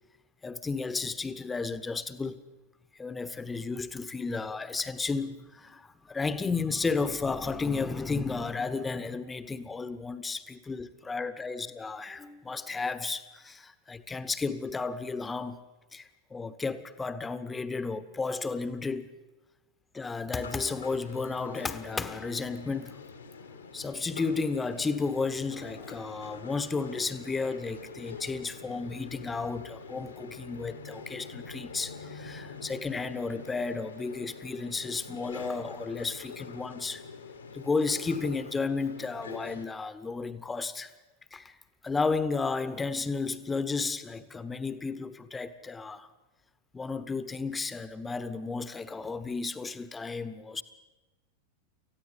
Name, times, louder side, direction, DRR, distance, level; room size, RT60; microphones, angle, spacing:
voice 1, 0.4-2.4 3.0-15.6 15.9-19.1 19.9-23.0 23.7-37.0 37.5-40.9 41.3-41.6 41.8-46.1 46.7-50.6, left 4 dB, 15° left, 1.2 m, -33 dB
sound 1, 20.4-39.6, left 5 dB, 75° left, 2.1 m, -45 dB
19.0 x 15.0 x 10.0 m
figure-of-eight pair, 90°, 0 cm